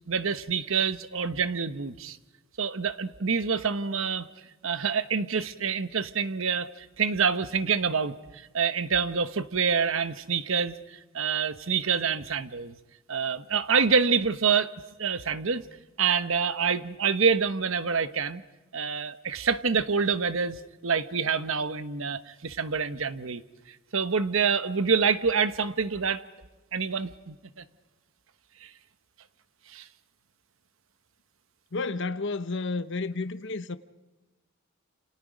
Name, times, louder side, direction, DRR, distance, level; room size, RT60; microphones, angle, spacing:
voice 1, 0.1-2.2 2.6-4.3 4.6-12.7 13.1-14.7 15.0-15.6 16.0-18.4 18.7-23.4 23.9-26.2 26.7-27.6 28.6-28.7 29.7-29.8, right 5 dB, 65° right, 1.0 m, -27 dB
voice 2, 31.7-33.8, left 3 dB, 55° left, 0.9 m, -31 dB
29.0 x 27.5 x 5.1 m
head